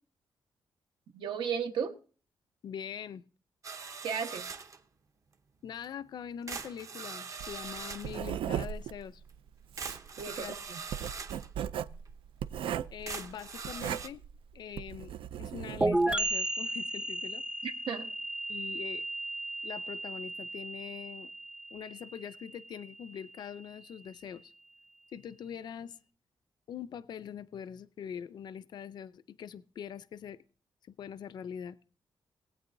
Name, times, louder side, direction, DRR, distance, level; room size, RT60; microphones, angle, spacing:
voice 1, 1.1-1.9 4.0-4.4 10.2-10.8 17.6-18.1, right 7 dB, 70° right, 6 dB, 1.2 m, -34 dB
voice 2, 2.6-3.2 5.6-9.2 10.3-10.6 12.9-14.2 14.5-17.4 18.5-19.0 19.6-21.3 21.7-24.5 25.1-26.0 26.7-30.4 30.9-32.0, left 8 dB, 55° left, 15 dB, 0.4 m, -43 dB
sound 1, 3.6-4.8 5.8-5.9 6.5-8.2 9.3-9.4 9.8-11.5 12.1-12.2 12.7-12.8 13.1-14.1, right 5 dB, 40° right, 0.9 m, -42 dB
Writing, 7.4-16.4, right 9 dB, 85° right, 0.4 m, -38 dB
sound 2, 15.8-23.4, right 2 dB, 10° right, 0.5 m, -34 dB
19.5 x 8.8 x 2.6 m, 0.40 s
wide cardioid pair, 165°, 9 cm